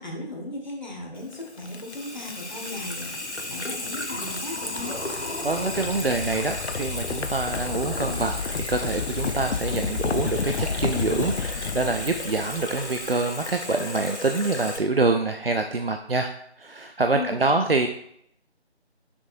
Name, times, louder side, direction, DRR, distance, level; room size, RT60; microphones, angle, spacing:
voice 1, 0.0-5.0 17.1-17.7, left 2 dB, 40° left, -1 dB, 1.6 m, -37 dB
Water tap faucet / Sink (filling or washing), 1.2-14.8, left 2 dB, 85° left, 1.2 m, -35 dB
sound 1, 1.3-13.4, left 5 dB, 70° left, 0.5 m, -32 dB
sound 2, 4.7-5.6 7.4-8.3 10.4-11.5, equal, 30° right, 2.1 m, -41 dB
voice 2, 5.1-16.3 16.6-17.9, right 3 dB, 60° right, 5 dB, 0.5 m, -26 dB
7.7 x 6.1 x 2.6 m, 0.71 s
figure-of-eight pair, 165°, 33 cm